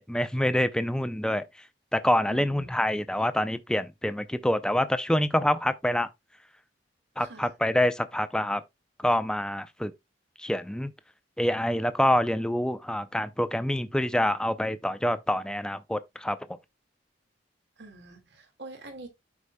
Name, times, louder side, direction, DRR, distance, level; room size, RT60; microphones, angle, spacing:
voice 1, 0.0-1.4 1.9-6.1 7.2-8.6 9.0-9.9 10.4-10.9 11.4-16.4, left 1 dB, 5° left, 0.5 m, -26 dB
voice 2, 2.3-2.8 7.2-7.5 17.8-19.1, right 2 dB, 65° right, 2.0 m, -45 dB
12.5 x 4.8 x 2.2 m
head